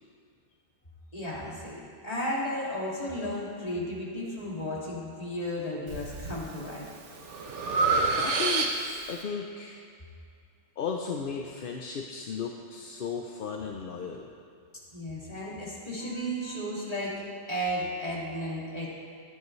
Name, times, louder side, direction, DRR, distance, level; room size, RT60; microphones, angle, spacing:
voice 1, 1.1-6.9 14.9-18.9, equal, 30° left, -6 dB, 2.4 m, -34 dB
Breathing, 5.9-6.4 6.8-9.1, right 3 dB, 65° right, 1.3 m, -28 dB
voice 2, 8.2-9.8 10.8-14.3 16.0-16.6, left 6 dB, 55° left, 2 dB, 0.7 m, -35 dB
15.5 x 10.5 x 3.2 m, 2.3 s
omnidirectional pair, 1.3 m